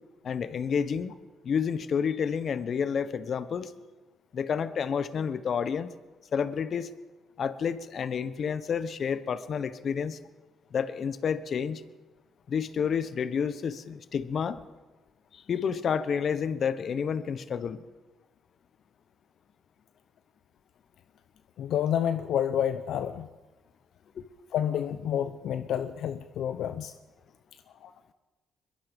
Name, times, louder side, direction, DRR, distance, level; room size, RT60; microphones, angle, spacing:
voice 1, 0.2-1.1 1.4-3.7 4.3-5.9 6.3-6.9 7.4-10.2 10.7-11.8 12.5-14.6 15.3-17.8 24.2-24.3, left 7 dB, 55° left, 14 dB, 1.1 m, -30 dB
voice 2, 21.6-23.3 24.5-26.9 27.8-27.9, left 9 dB, 75° left, 11 dB, 0.8 m, -29 dB
22.5 x 22.0 x 5.3 m, 1.2 s
cardioid pair, 90°, 0 cm